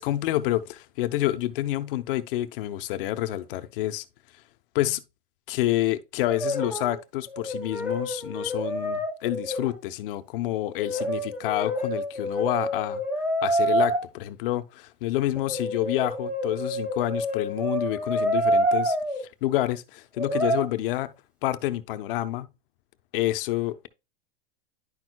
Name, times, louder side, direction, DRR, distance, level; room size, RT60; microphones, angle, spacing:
voice 1, 0.0-4.0 4.7-5.0 5.5-13.0 13.4-19.0 19.4-21.1 21.4-22.5 23.1-23.9, left 15 dB, 65° left, 0.8 m, -28 dB
Brass instrument, 6.3-7.0 7.3-9.8 10.8-14.0 15.4-19.2 20.2-20.6, right 1 dB, 5° right, 2.0 m, -27 dB
10.5 x 6.2 x 2.3 m
supercardioid pair, 140°, 29 cm